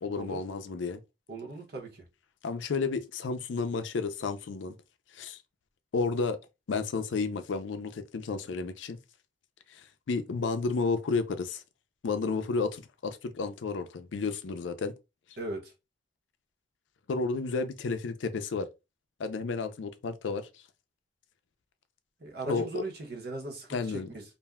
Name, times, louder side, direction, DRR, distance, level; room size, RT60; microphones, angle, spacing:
voice 1, 0.0-1.0 2.4-4.7 5.1-5.4 5.9-6.4 6.7-9.0 9.7-11.6 12.0-14.9 17.1-18.7 19.2-20.6 22.5-22.8 23.7-24.1, left 4 dB, 75° left, 0.4 m, -32 dB
voice 2, 1.3-2.0 15.4-15.7 22.2-24.2, right 2 dB, 55° right, 0.9 m, -38 dB
2.5 x 2.2 x 3.4 m
head